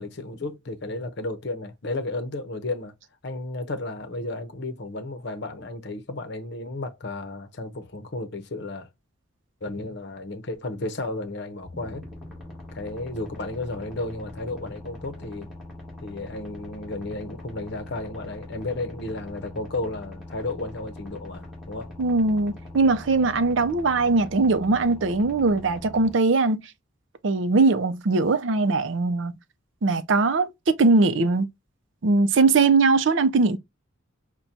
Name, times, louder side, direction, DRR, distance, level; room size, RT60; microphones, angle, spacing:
voice 1, 0.0-2.9 3.2-8.9 9.6-12.0 12.7-15.5 16.0-21.9, left 2 dB, 55° left, 0.7 m, -33 dB
sound 1, 11.6-26.1, left 1 dB, ahead, 1.5 m, -42 dB
voice 2, 22.0-26.6 27.2-29.3 29.8-31.5 32.0-33.6, right 3 dB, 65° right, 0.5 m, -21 dB
5.8 x 2.2 x 2.6 m
head